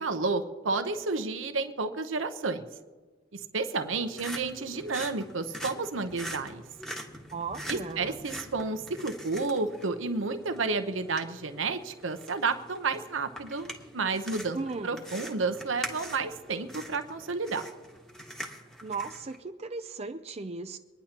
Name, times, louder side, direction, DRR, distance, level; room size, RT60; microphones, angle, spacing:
voice 1, 0.0-2.7 3.3-6.6 7.7-14.6 14.8-17.6, right 4 dB, 90° right, 8 dB, 0.9 m, -31 dB
sound 1, 3.8-19.4, equal, 5° left, 1.3 m, -44 dB
voice 2, 7.3-8.2 14.5-15.0 18.8-20.8, right 4 dB, 35° right, 8 dB, 0.5 m, -36 dB
24.5 x 10.5 x 3.0 m, 1.3 s
head